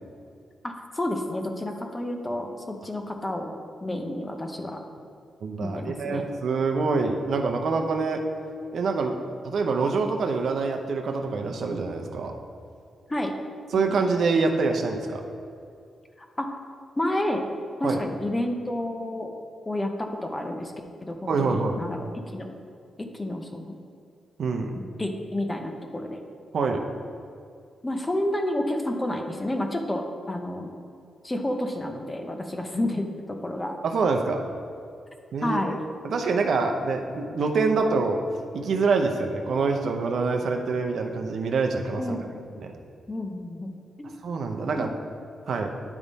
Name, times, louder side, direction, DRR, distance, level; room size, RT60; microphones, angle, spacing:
voice 1, 0.6-4.8 5.6-6.3 13.1-13.3 13.7-14.1 16.4-16.6 17.0-17.4 17.8-19.3 19.7-20.7 21.0-22.6 23.0-23.8 24.7-26.2 27.8-30.7 31.2-33.7 35.4-35.8 42.0-42.6 43.1-44.1 44.8-44.9, left 1 dB, 15° left, 4 dB, 0.6 m, -30 dB
voice 2, 5.4-8.2 8.7-9.2 9.4-12.4 13.7-15.2 17.8-18.0 21.3-21.8 24.4-24.7 26.5-26.8 33.8-34.4 35.3-35.8 36.0-38.2 38.5-42.0 42.6-42.7 44.2-44.9 45.5-45.8, right 4 dB, 65° right, 4 dB, 0.6 m, -25 dB
9.9 x 3.6 x 4.0 m, 2.4 s
cardioid pair, 115°, 0 cm